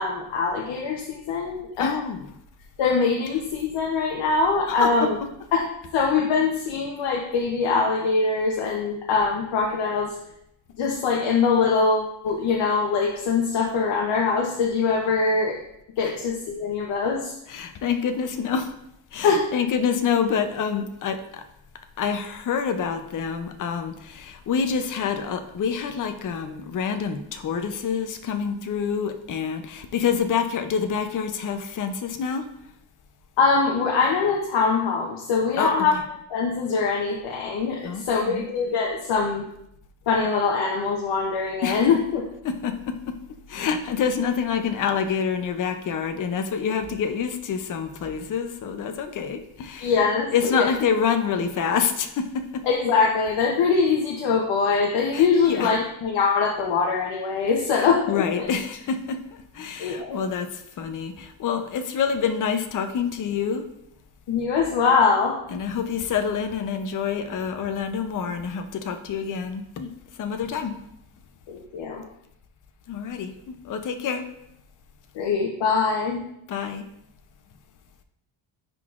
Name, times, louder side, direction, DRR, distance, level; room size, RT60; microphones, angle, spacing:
voice 1, 0.0-1.9 2.8-5.2 5.5-5.6 5.9-10.1 10.8-15.6 16.0-17.3 19.2-19.4 33.4-35.9 36.3-39.4 40.1-42.2 49.8-50.7 52.6-58.5 59.8-60.2 64.3-65.4 71.5-72.0 75.1-76.2, left 5 dB, 65° left, 0 dB, 0.9 m, -23 dB
voice 2, 1.8-2.3 4.7-4.9 17.5-18.7 19.1-21.4 22.0-32.5 35.6-35.7 37.8-38.5 41.6-41.9 42.4-43.1 43.5-50.0 50.3-52.6 55.1-55.7 57.7-63.7 65.5-70.7 72.9-74.2 76.5-76.9, left 6 dB, 40° left, 7 dB, 0.6 m, -27 dB
10.5 x 3.9 x 2.5 m, 0.77 s
cardioid pair, 120°, 48 cm